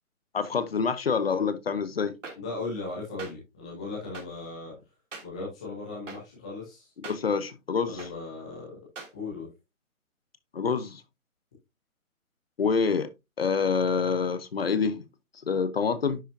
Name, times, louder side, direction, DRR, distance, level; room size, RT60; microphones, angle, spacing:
voice 1, 0.3-2.1 7.0-8.0 10.5-11.0 12.6-13.1 13.4-15.1 15.5-16.2, left 5 dB, 45° left, 0.9 m, -26 dB
sound 1, 2.2-2.3 3.2-3.3 4.1-4.2 5.1-5.2 6.1-6.2 7.0-7.2 8.0-8.1 9.0-9.1, right 4 dB, 60° right, 3.0 m, -40 dB
voice 2, 2.4-4.7 5.2-6.9 7.8-8.8 9.1-9.5, left 3 dB, 5° left, 0.7 m, -37 dB
10.0 x 6.1 x 2.7 m
hypercardioid pair, 160°, 43 cm